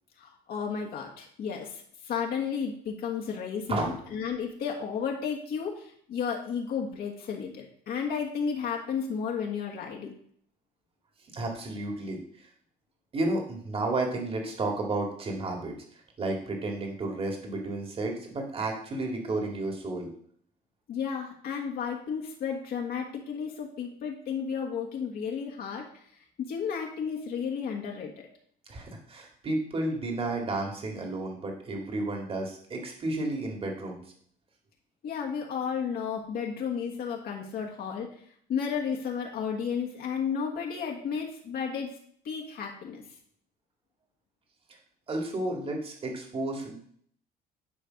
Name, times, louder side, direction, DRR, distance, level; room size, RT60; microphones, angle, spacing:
voice 1, 0.2-10.1 20.9-25.9 26.1-28.3 35.0-38.2 38.5-41.9 42.2-43.0, left 6 dB, 65° left, 0 dB, 1.5 m, -33 dB
voice 2, 11.3-12.5 13.1-20.1 28.7-34.0 45.1-46.8, right 2 dB, 35° right, 1 dB, 2.1 m, -32 dB
9.9 x 3.4 x 6.4 m, 0.62 s
cardioid pair, 110°, 17 cm